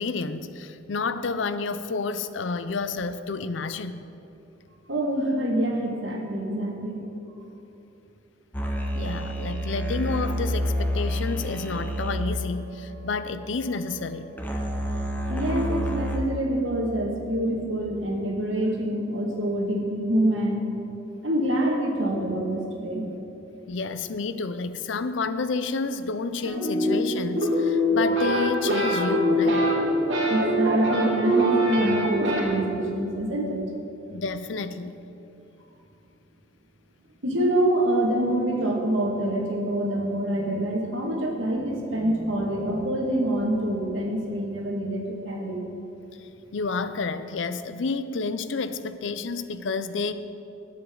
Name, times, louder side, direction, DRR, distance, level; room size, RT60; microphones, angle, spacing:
voice 1, 0.0-4.0 8.9-14.3 23.7-29.7 34.1-35.0 46.2-50.1, left 4 dB, 75° left, 12 dB, 0.5 m, -30 dB
voice 2, 4.9-7.0 15.3-20.7 21.2-23.0 30.3-33.6 37.2-45.6, right 1 dB, 85° right, 0 dB, 2.0 m, -26 dB
sound 1, 8.5-16.2, equal, 10° left, 1.0 m, -29 dB
sound 2, 26.4-32.4, equal, 70° right, 2.6 m, -23 dB
18.5 x 8.0 x 3.9 m, 2.9 s
head